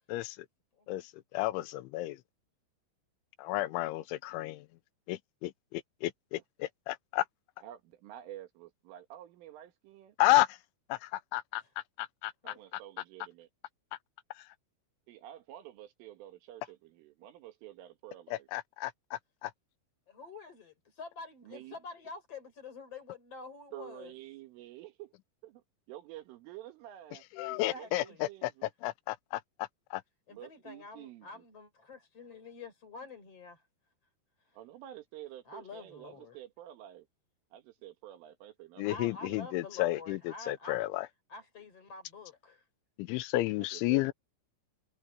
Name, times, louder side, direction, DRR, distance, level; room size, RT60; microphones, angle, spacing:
voice 1, 0.1-0.5 0.9-2.2 3.4-4.7 5.1-7.3 10.2-10.6 10.9-11.6 12.0-12.5 14.4-14.5 18.3-19.5 27.3-28.5 28.8-30.0 38.8-41.1 43.0-44.1, left 17 dB, 85° left, 3.1 m, -32 dB
voice 2, 7.6-10.2 12.4-13.5 15.1-18.5 21.4-21.8 23.7-25.1 25.4-27.2 27.7-28.7 30.3-31.3 34.5-37.1 37.5-39.5 43.7-44.1, right 13 dB, 85° right, 4.5 m, -49 dB
voice 3, 20.1-24.1 27.4-28.3 30.3-33.7 34.4-34.6 35.4-36.4 38.9-40.8 41.3-42.7, left 4 dB, 30° left, 4.8 m, -47 dB
omnidirectional pair, 5.5 m